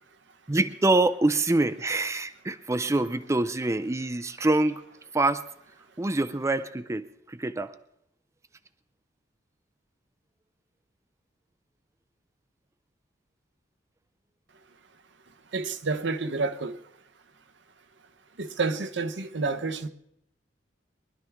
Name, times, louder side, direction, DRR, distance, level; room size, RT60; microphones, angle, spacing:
voice 1, 0.5-4.8 5.1-5.5 6.0-7.7, right 2 dB, 15° right, 0.4 m, -25 dB
voice 2, 15.5-16.8 18.4-19.9, right 4 dB, 75° right, 0.9 m, -29 dB
23.5 x 11.5 x 3.5 m
head